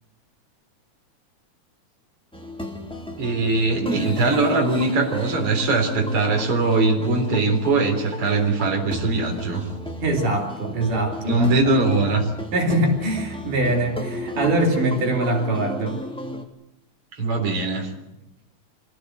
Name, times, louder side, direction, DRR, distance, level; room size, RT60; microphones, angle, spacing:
sound 1, 2.3-16.4, left 1 dB, ahead, 2.2 m, -35 dB
voice 1, 3.2-9.7 11.2-12.3 17.1-17.9, right 3 dB, 45° right, 3 dB, 4.5 m, -21 dB
voice 2, 10.0-11.5 12.5-16.0, right 1 dB, 75° right, 2 dB, 5.0 m, -23 dB
26.5 x 17.0 x 8.0 m, 0.90 s
omnidirectional pair, 3.7 m